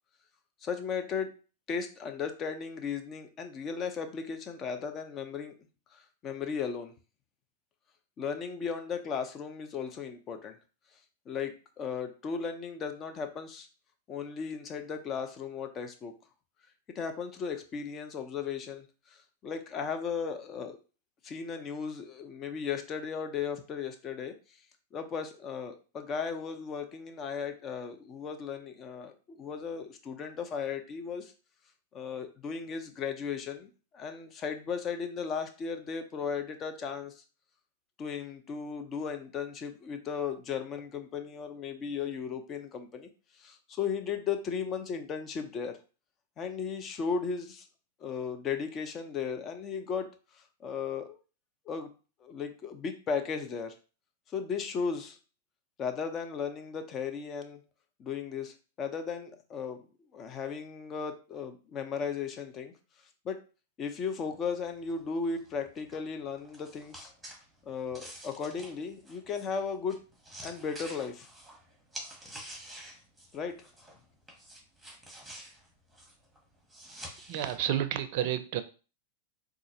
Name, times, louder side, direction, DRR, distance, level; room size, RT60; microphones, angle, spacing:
voice 1, 0.6-1.4 1.7-5.5 5.9-6.9 8.2-10.6 11.3-13.7 14.1-16.1 16.9-20.8 21.2-24.4 24.9-31.3 31.9-37.2 38.0-45.8 46.4-47.7 48.0-50.1 50.3-51.2 51.7-51.9 52.2-53.7 54.3-55.2 55.8-57.6 58.0-59.9 60.1-62.7 63.2-63.4 63.8-67.1 67.6-70.0 70.4-71.3 73.3-73.7, left 6 dB, 30° left, 7 dB, 0.7 m, -36 dB
sound 1, 64.3-74.0 74.3-77.6, right 1 dB, 5° right, 1.2 m, -49 dB
voice 2, 77.3-78.6, right 11 dB, 55° right, 11 dB, 0.5 m, -30 dB
3.8 x 2.4 x 2.9 m, 0.33 s
hypercardioid pair, 105°, 0 cm